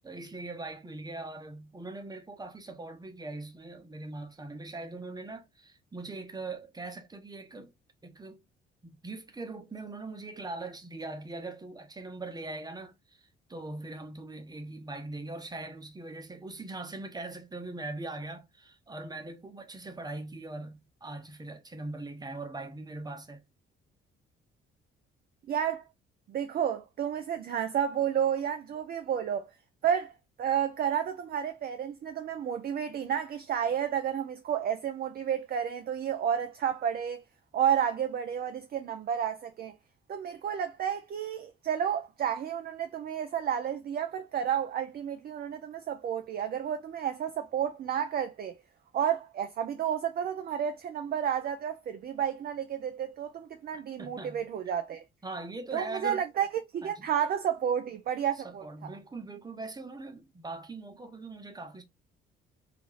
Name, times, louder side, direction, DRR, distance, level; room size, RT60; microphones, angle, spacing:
voice 1, 0.0-7.7 8.0-8.4 8.8-23.4 54.0-54.5 55.2-56.3 56.8-57.1 58.4-61.8, right 2 dB, 15° right, 0.9 m, -41 dB
voice 2, 25.5-25.8 26.3-29.5 29.8-37.2 37.5-39.8 40.1-48.6 48.9-55.0 55.7-58.9, right 9 dB, 30° right, 0.4 m, -31 dB
2.8 x 2.5 x 3.7 m
figure-of-eight pair, 45°, 30 cm